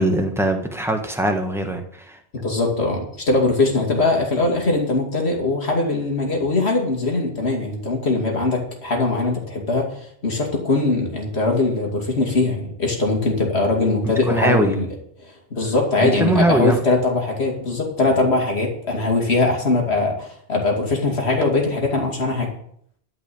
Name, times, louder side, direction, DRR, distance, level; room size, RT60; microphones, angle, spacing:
voice 1, 0.0-2.2 14.3-14.7 16.0-16.8, right 1 dB, ahead, 3 dB, 1.5 m, -21 dB
voice 2, 2.3-14.9 15.5-22.5, left 2 dB, 70° left, 0 dB, 2.8 m, -21 dB
12.0 x 5.6 x 8.6 m, 0.66 s
omnidirectional pair, 1.1 m